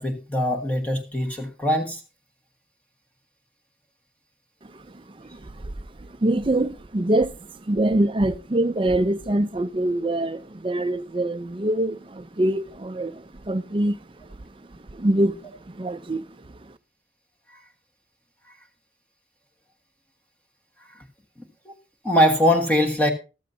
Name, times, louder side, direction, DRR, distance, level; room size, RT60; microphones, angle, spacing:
voice 1, 0.0-2.0 21.6-21.7 22.0-23.1, equal, 10° left, 1.3 m, -22 dB
voice 2, 4.9-5.7 6.2-14.0 14.9-15.4 15.7-16.2, right 1 dB, 25° right, 0.5 m, -24 dB
14.0 x 13.0 x 2.7 m
head